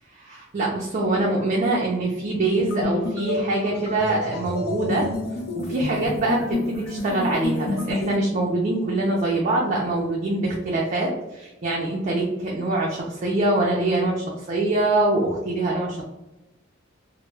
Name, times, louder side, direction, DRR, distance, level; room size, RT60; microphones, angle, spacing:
voice 1, 0.1-5.1 5.5-16.0, right 2 dB, 40° right, -3 dB, 0.4 m, -24 dB
sound 1, 2.6-8.2, left 2 dB, 55° left, 0.4 m, -29 dB
2.1 x 2.0 x 3.2 m, 1.0 s
head